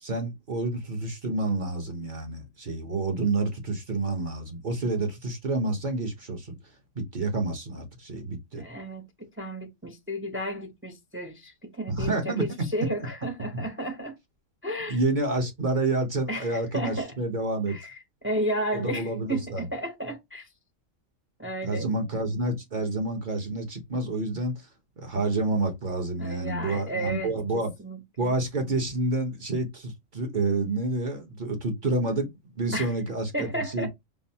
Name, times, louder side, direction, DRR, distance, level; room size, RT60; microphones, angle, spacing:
voice 1, 0.0-6.5 6.9-8.6 11.9-12.4 13.5-13.6 14.9-17.8 18.7-19.6 21.6-24.7 25.0-27.7 28.2-33.9, right 2 dB, 40° right, 1.0 m, -29 dB
voice 2, 8.6-14.2 14.6-15.0 16.3-17.1 17.7-20.5 21.4-21.9 26.2-28.3 32.7-32.9 33.3-33.9, right 1 dB, 15° right, 0.4 m, -33 dB
5.3 x 2.0 x 2.7 m
omnidirectional pair, 1.3 m